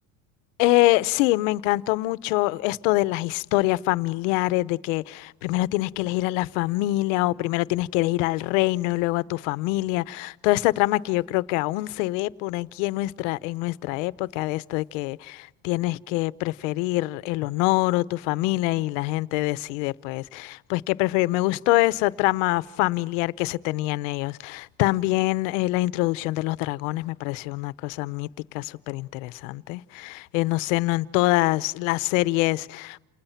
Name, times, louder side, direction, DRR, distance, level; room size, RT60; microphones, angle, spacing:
voice 1, 0.6-28.3 28.5-33.0, left 19 dB, 85° left, 1.0 m, -25 dB
29.0 x 29.0 x 5.8 m
cardioid pair, 160°, 37 cm